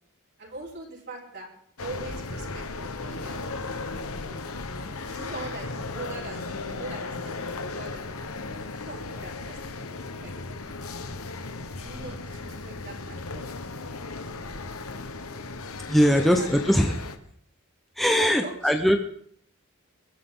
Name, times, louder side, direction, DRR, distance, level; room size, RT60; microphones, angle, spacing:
voice 1, 0.4-1.5 1.8-4.4 5.0-8.3 8.8-10.3 11.8-14.6 15.9-16.5 16.9-17.0 18.0-18.8, right 2 dB, 50° right, -2 dB, 4.7 m, -42 dB
sound 1, 1.8-17.2, left 3 dB, 80° left, 1.3 m, -36 dB
voice 2, 15.9-17.0 18.0-19.0, equal, ahead, 4 dB, 0.9 m, -21 dB
22.0 x 14.0 x 3.9 m, 0.63 s
head